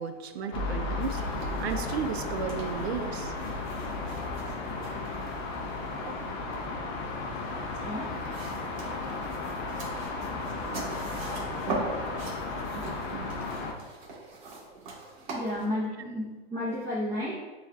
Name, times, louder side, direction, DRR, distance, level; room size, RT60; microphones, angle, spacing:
voice 1, 0.0-3.3 3.9-4.4 4.7-5.0 6.0-6.2 12.7-13.8 14.2-15.1, right 6 dB, 85° right, 8 dB, 0.5 m, -37 dB
sound 1, 0.5-13.7, left 3 dB, 35° left, 0.5 m, -34 dB
sound 2, 1.0-15.6, right 2 dB, 50° right, 1.3 m, -42 dB
voice 2, 15.2-16.2 16.5-17.4, left 1 dB, 15° right, -11 dB, 0.7 m, -32 dB
7.0 x 2.4 x 2.2 m, 1.3 s
hypercardioid pair, 140°, 32 cm